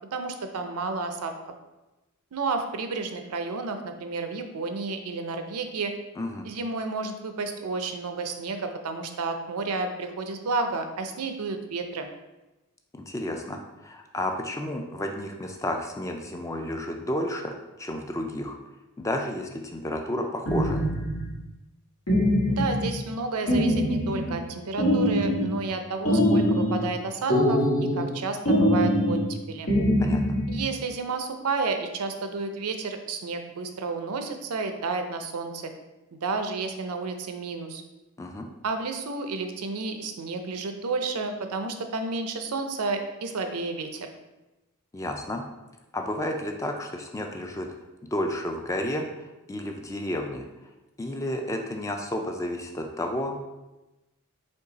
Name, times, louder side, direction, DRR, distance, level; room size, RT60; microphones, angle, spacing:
voice 1, 0.0-1.3 2.3-5.9 6.4-12.1 22.5-27.6 28.0-29.8 30.5-35.7 36.1-37.8 38.6-44.1, right 4 dB, 80° right, 6 dB, 0.5 m, -31 dB
voice 2, 6.2-6.5 12.9-18.6 19.0-20.9 30.0-30.2 38.2-38.5 44.9-45.4 45.9-47.7 48.0-50.5 51.0-53.4, left 1 dB, 15° left, 3 dB, 0.3 m, -31 dB
sound 1, 20.5-21.3 22.1-23.0 23.5-24.4 24.8-25.6 26.1-26.9 27.3-28.1 28.5-29.3 29.7-30.6, equal, 80° left, 1.5 m, -23 dB
5.2 x 2.4 x 3.9 m, 1.0 s
head